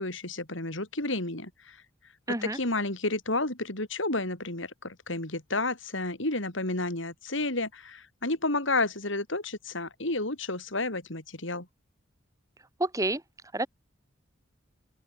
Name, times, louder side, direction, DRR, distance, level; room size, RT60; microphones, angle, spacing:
voice 1, 0.0-1.8 2.4-11.7, left 2 dB, 65° left, 4.7 m, -31 dB
voice 2, 2.3-2.6 12.8-13.2 13.5-13.7, right 2 dB, 15° right, 3.2 m, -28 dB
open air
head